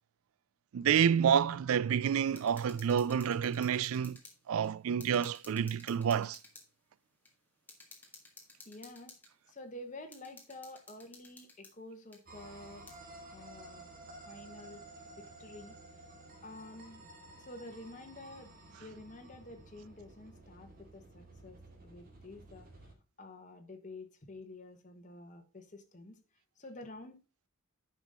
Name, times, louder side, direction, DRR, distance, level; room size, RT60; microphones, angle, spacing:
voice 1, 0.7-4.2 4.5-6.4, right 8 dB, 70° right, 0.3 m, -29 dB
sound 1, 2.3-4.4 4.6-4.7 5.0-6.7 7.2-7.3 7.7-9.3 10.1-11.7 12.1-12.2 12.9-13.0, left 3 dB, 10° left, 1.6 m, -55 dB
voice 2, 8.6-9.2 9.5-12.9 13.3-13.9 14.3-14.9 15.2-15.7 16.4-17.0 17.4-18.5 18.8-22.9 23.2-26.2 26.6-27.2, left 2 dB, 35° left, 1.3 m, -49 dB
sound 2, 12.3-22.9, right 2 dB, 40° right, 2.1 m, -53 dB
10.0 x 5.7 x 3.7 m
head